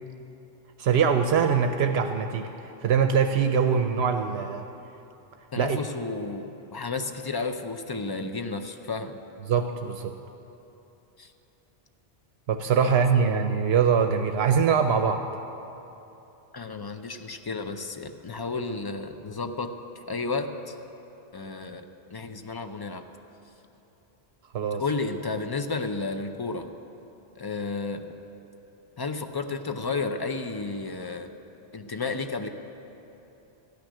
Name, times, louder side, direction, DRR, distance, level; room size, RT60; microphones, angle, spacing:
voice 1, 0.8-4.6 5.6-5.8 9.5-10.1 12.5-15.2 24.5-24.8, right 6 dB, 80° right, 6 dB, 0.8 m, -23 dB
voice 2, 5.5-9.2 11.2-11.3 12.8-12.9 16.5-19.7 20.1-20.7 21.3-23.0 24.8-26.7 27.4-28.0 29.0-31.3 31.7-32.5, left 3 dB, 30° left, 7 dB, 0.4 m, -32 dB
13.5 x 6.3 x 9.9 m, 3.0 s
omnidirectional pair, 1.1 m